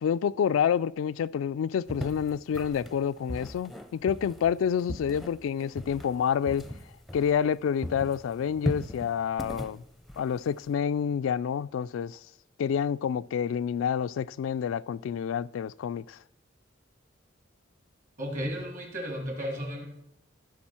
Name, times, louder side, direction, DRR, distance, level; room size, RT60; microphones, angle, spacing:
voice 1, 0.0-6.6 7.1-9.8 10.2-12.2 12.6-16.2, left 8 dB, 90° left, 0.3 m, -28 dB
sound 1, 1.9-7.6 7.8-10.7, left 1 dB, ahead, 0.5 m, -38 dB
voice 2, 18.2-19.8, equal, 45° right, 2.4 m, -34 dB
14.5 x 6.2 x 4.3 m
head